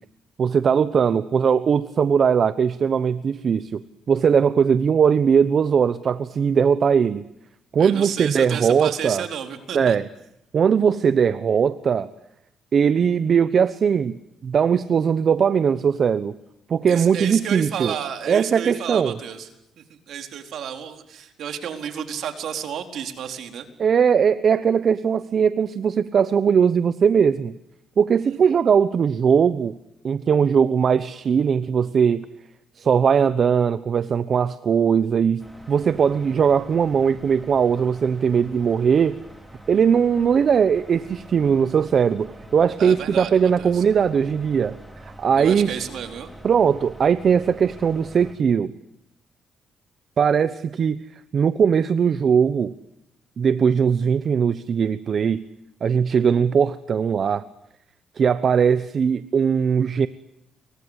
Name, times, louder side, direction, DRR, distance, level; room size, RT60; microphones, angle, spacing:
voice 1, 0.4-3.8 4.1-7.3 7.7-9.2 9.7-10.0 10.5-12.1 12.7-14.2 14.4-16.3 16.7-17.9 18.3-19.2 23.8-27.5 28.0-29.8 30.0-32.3 32.8-39.2 39.7-44.8 45.2-45.7 46.4-48.7 50.2-51.0 51.3-52.7 53.4-55.4 55.8-57.4 58.2-60.1, right 7 dB, 50° right, 14 dB, 1.0 m, -19 dB
voice 2, 7.8-10.0 16.9-19.5 19.8-23.7 42.8-43.3 43.6-43.8 45.3-46.3, right 8 dB, 70° right, 6 dB, 4.3 m, -31 dB
sound 1, 35.4-48.3, right 1 dB, 5° right, 5.2 m, -45 dB
30.0 x 24.5 x 8.2 m, 0.82 s
cardioid pair, 90°, 0 cm